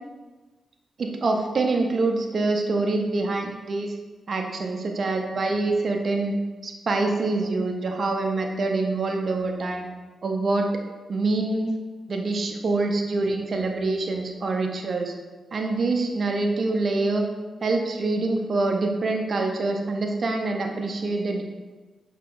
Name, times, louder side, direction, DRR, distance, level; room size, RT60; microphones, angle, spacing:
voice 1, 1.0-3.9 4.3-6.3 6.6-9.9 10.2-10.7 11.1-11.8 12.1-15.1 15.5-17.3 17.6-21.4, right 3 dB, 60° right, 3 dB, 0.5 m, -25 dB
5.5 x 2.9 x 2.5 m, 1.2 s
cardioid pair, 50°, 0 cm